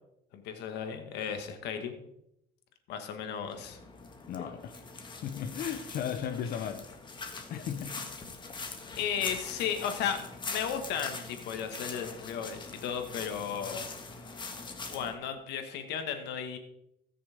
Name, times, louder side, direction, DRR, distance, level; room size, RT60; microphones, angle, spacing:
voice 1, 0.3-2.0 2.9-3.8 9.0-13.9 14.9-16.6, left 8 dB, 85° left, 6 dB, 1.6 m, -35 dB
sound 1, 3.5-15.1, left 4 dB, 25° left, 1.7 m, -43 dB
voice 2, 4.3-4.7 5.2-6.9 7.5-8.0, left 8 dB, 65° left, 5 dB, 0.9 m, -35 dB
19.0 x 6.7 x 3.6 m, 0.79 s
cardioid pair, 110°, 17 cm